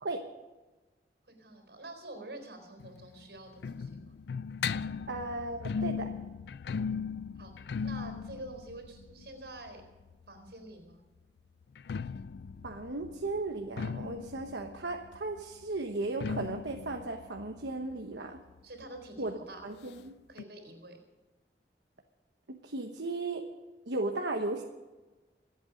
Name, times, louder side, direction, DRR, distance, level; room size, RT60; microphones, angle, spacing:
voice 1, 1.3-4.2 7.4-7.5 7.8-9.8 10.3-11.0 18.6-19.6 20.3-21.0, right 1 dB, 75° right, 5 dB, 4.1 m, -47 dB
sound 1, 2.8-10.5 11.6-19.0 19.3-19.4 19.6-19.7 20.4-20.5, left 6 dB, 70° left, 0.4 m, -38 dB
voice 2, 5.1-6.1 12.6-18.4 19.2-20.1 22.5-23.4 23.9-24.6, right 2 dB, 90° right, 3 dB, 1.2 m, -36 dB
26.5 x 8.8 x 5.2 m, 1.2 s
head